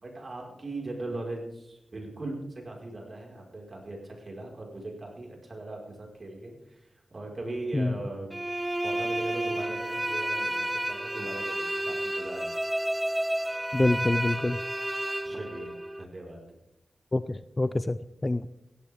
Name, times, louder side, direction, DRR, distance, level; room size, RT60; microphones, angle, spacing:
voice 1, 0.0-8.4 8.8-12.5 15.2-15.7 16.0-16.4, right 2 dB, 50° right, 0 dB, 4.9 m, -39 dB
sound 1, 8.3-16.0, right 1 dB, 15° right, 0.7 m, -31 dB
voice 2, 13.7-14.6 17.1-18.5, left 2 dB, 30° left, 14 dB, 0.5 m, -26 dB
16.5 x 13.5 x 3.6 m, 0.83 s
cardioid pair, 45°, 0 cm